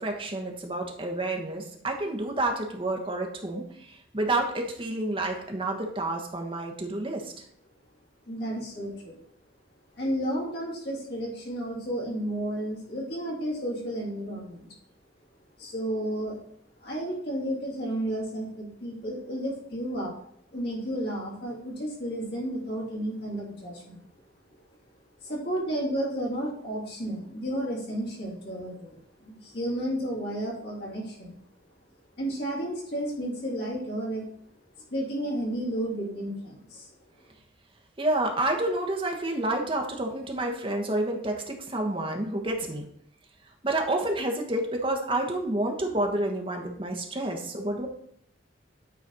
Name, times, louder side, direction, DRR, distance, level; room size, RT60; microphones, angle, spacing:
voice 1, 0.0-7.3 38.0-42.8 43.6-47.9, right 2 dB, 30° right, 2 dB, 1.1 m, -29 dB
voice 2, 8.3-9.2 10.0-14.7 15.6-16.4 16.8-20.1 20.5-24.0 25.2-28.9 29.2-31.3 32.2-34.2 34.9-36.8, right 1 dB, 60° left, -4 dB, 3.0 m, -32 dB
9.3 x 4.1 x 4.1 m, 0.69 s
head